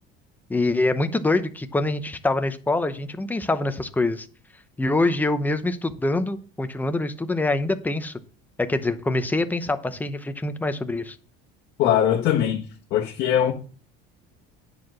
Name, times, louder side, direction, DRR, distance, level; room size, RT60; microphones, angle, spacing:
voice 1, 0.5-4.3 4.8-8.2 8.6-11.2, left 2 dB, 10° left, 9 dB, 0.7 m, -25 dB
voice 2, 11.8-12.6 12.9-13.5, left 10 dB, 55° left, -2 dB, 1.4 m, -21 dB
10.0 x 4.7 x 6.2 m, 0.40 s
cardioid pair, 140°, 21 cm